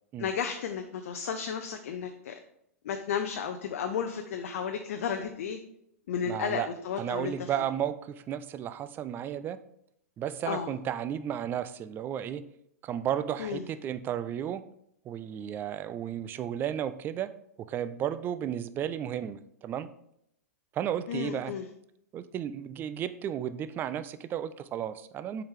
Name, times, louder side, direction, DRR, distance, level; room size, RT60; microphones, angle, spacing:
voice 1, 0.2-2.3 2.8-5.6 6.1-7.5 10.5-10.7 13.4-13.6 21.1-21.6, left 7 dB, 60° left, 6 dB, 0.6 m, -33 dB
voice 2, 6.3-6.7 7.0-9.6 10.2-12.4 12.8-14.6 15.0-17.3 17.6-19.9 20.7-21.5 22.1-25.4, right 10 dB, 25° right, 13 dB, 0.4 m, -33 dB
7.2 x 4.7 x 3.5 m, 0.74 s
figure-of-eight pair, 105°, 8 cm